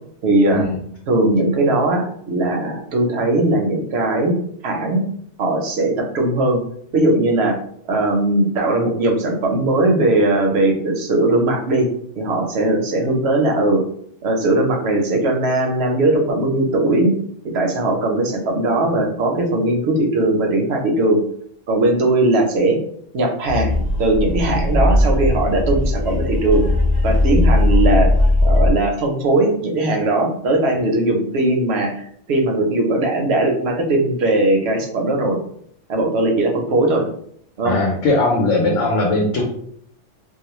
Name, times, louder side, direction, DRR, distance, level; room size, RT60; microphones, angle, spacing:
voice 1, 0.2-0.6 1.1-4.3 4.6-5.0 5.4-6.6 6.9-7.6 7.9-11.9 12.2-13.8 14.2-17.1 17.5-21.2 21.7-22.8 23.1-23.7 24.0-26.6 27.0-28.1 28.4-32.0 32.3-35.4 35.9-37.1 37.6-37.8, right 2 dB, 65° right, 2 dB, 0.8 m, -19 dB
sound 1, 23.5-28.7, left 1 dB, 25° left, 0.4 m, -17 dB
voice 2, 37.6-39.4, left 2 dB, 80° left, -2 dB, 0.9 m, -19 dB
2.4 x 2.0 x 2.9 m, 0.66 s
omnidirectional pair, 1.3 m